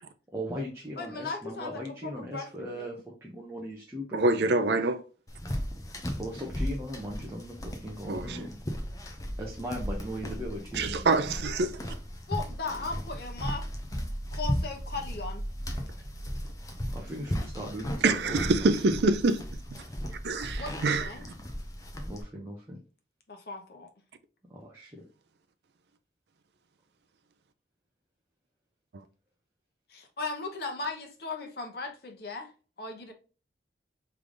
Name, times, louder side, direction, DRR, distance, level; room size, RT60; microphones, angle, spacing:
voice 1, 0.3-4.8 6.1-8.5 9.4-11.2 16.9-18.7 22.0-22.8 24.5-25.0, equal, 15° right, 0.8 m, -38 dB
voice 2, 1.0-2.9 12.3-13.6 14.3-15.4 20.6-21.2 23.3-23.9 29.9-32.5 32.8-33.1, left 3 dB, 55° left, 1.0 m, -37 dB
voice 3, 4.1-5.0 8.1-8.5 10.7-11.9 18.0-19.5 19.7-19.8 20.2-21.1 28.9-29.0, right 3 dB, 65° right, 0.4 m, -26 dB
sound 1, 5.3-22.2, equal, 20° left, 0.6 m, -36 dB
3.4 x 3.3 x 3.8 m
head